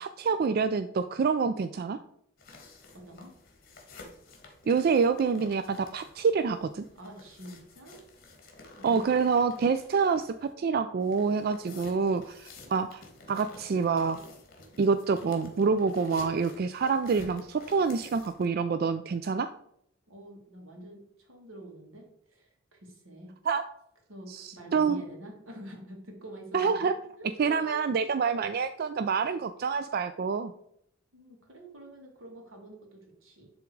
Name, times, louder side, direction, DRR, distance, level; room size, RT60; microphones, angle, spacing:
voice 1, 0.0-2.0 4.7-6.8 8.8-14.2 14.8-19.5 23.5-23.6 24.3-25.0 26.5-26.9 27.4-30.5, right 5 dB, 50° right, 10 dB, 0.3 m, -27 dB
sound 1, 2.4-10.5 11.0-18.5, left 2 dB, 50° left, 1.7 m, -51 dB
voice 2, 2.9-3.3 6.9-8.0 20.1-23.4 24.1-26.9 27.2-27.7 31.1-33.5, right 1 dB, 85° right, 2 dB, 2.1 m, -47 dB
10.5 x 3.6 x 4.6 m, 0.71 s
head